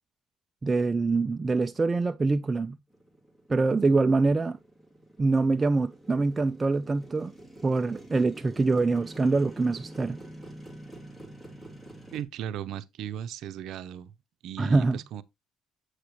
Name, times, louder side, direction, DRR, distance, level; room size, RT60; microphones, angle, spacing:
voice 1, 0.6-2.8 3.5-4.6 5.2-7.3 7.6-10.2 14.6-15.0, right 3 dB, 20° right, 0.4 m, -25 dB
Motorcycle, 2.9-12.2, right 1 dB, 5° left, 2.4 m, -47 dB
voice 2, 12.1-14.1 14.4-15.2, right 10 dB, 70° right, 0.6 m, -36 dB
8.0 x 6.5 x 3.0 m
cardioid pair, 120°, 0 cm